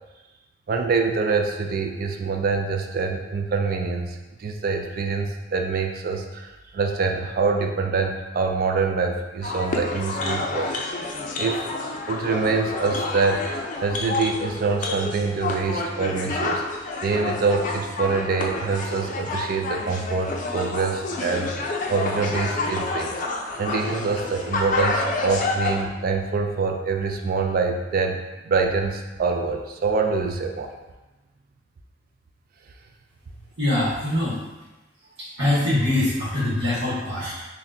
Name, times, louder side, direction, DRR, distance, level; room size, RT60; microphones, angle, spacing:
voice 1, 0.7-10.7 11.4-11.7 12.1-13.5 13.8-16.6 17.0-30.7, right 4 dB, 55° right, 3 dB, 0.3 m, -25 dB
sound 1, 9.4-25.8, left 3 dB, 45° left, 0.4 m, -29 dB
voice 2, 33.6-34.4 35.2-37.4, left 1 dB, 70° right, -9 dB, 1.1 m, -23 dB
5.9 x 2.2 x 2.7 m, 1.1 s
head